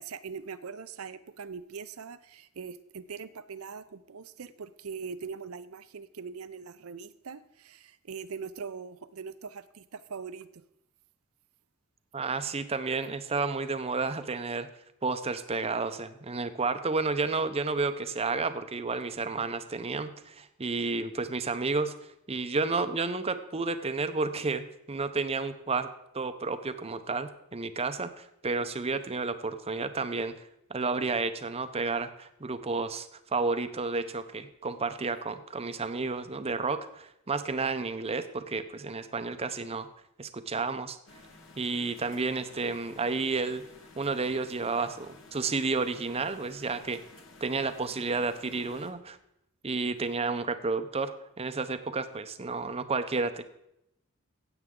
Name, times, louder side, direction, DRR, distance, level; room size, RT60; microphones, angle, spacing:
voice 1, 0.0-10.6, right 5 dB, 70° right, 14 dB, 0.6 m, -42 dB
voice 2, 12.1-14.7 15.0-21.9 22.3-25.9 26.1-30.3 30.7-39.9 40.2-41.0 41.6-43.6 44.0-47.0 47.4-49.2 49.6-53.4, right 4 dB, 25° right, 10 dB, 0.7 m, -31 dB
sound 1, 41.1-48.9, left 3 dB, 60° left, 1.7 m, -53 dB
15.5 x 8.1 x 3.8 m, 0.81 s
head